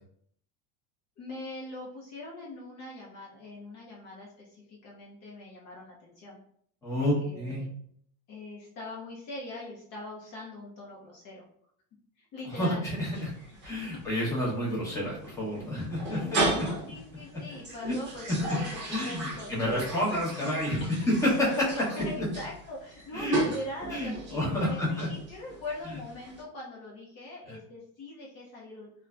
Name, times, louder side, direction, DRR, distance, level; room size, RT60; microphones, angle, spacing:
voice 1, 1.2-6.4 6.9-7.7 8.3-11.5 12.2-12.8 13.3-13.6 14.2-14.5 16.0-20.9 21.7-28.9, left 2 dB, 40° left, -4 dB, 0.6 m, -42 dB
voice 2, 6.8-7.6 12.5-13.3 13.6-16.6 17.8-17.9 18.3-18.6 18.9-20.9 21.8-21.9 22.2-22.3 23.1-23.4 23.9-25.1 27.5-27.6, left 1 dB, 10° left, -7 dB, 0.8 m, -30 dB
sound 1, 13.1-26.4, right 2 dB, 30° right, 0.6 m, -36 dB
2.6 x 2.2 x 2.3 m, 0.65 s
supercardioid pair, 140°, 40 cm